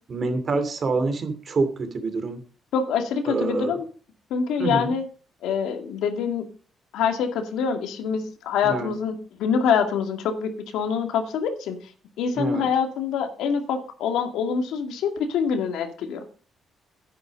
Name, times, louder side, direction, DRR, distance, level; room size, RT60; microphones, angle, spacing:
voice 1, 0.1-2.4 3.3-3.8 4.6-4.9 8.6-8.9 12.3-12.7, right 3 dB, 45° right, 9 dB, 2.6 m, -26 dB
voice 2, 2.7-3.8 4.3-5.0 5.4-6.5 6.9-11.8 12.2-16.3, left 6 dB, 85° left, 6 dB, 2.2 m, -25 dB
10.5 x 9.7 x 5.2 m, 0.40 s
cardioid pair, 90°, 0 cm